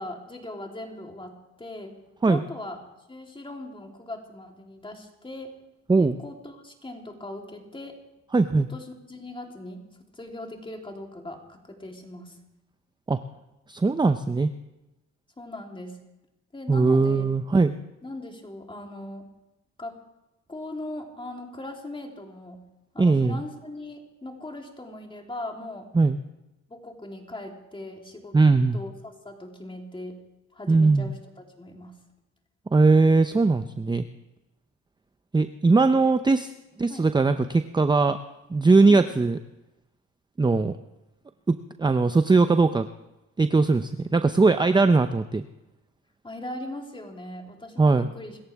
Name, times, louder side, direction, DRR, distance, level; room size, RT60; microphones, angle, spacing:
voice 1, 0.0-2.0 2.3-2.8 3.1-5.6 6.0-8.0 8.7-9.9 10.1-12.4 15.4-16.0 16.5-17.3 18.0-19.3 19.8-20.0 20.5-22.6 22.9-25.9 26.7-28.4 28.7-30.2 30.5-32.0 36.9-37.1 38.9-39.1 46.2-48.4, left 1 dB, 15° left, 2 dB, 3.4 m, -39 dB
voice 2, 8.3-8.7 13.1-13.2 13.7-14.5 16.7-17.7 23.0-23.4 25.9-26.2 28.3-28.8 30.7-31.1 32.7-34.0 35.3-36.5 36.8-38.2 38.5-39.4 40.4-40.8 41.5-42.9 43.4-45.4 47.8-48.1, right 3 dB, 15° right, 9 dB, 0.6 m, -20 dB
26.5 x 14.5 x 3.5 m, 0.96 s
cardioid pair, 90°, 30 cm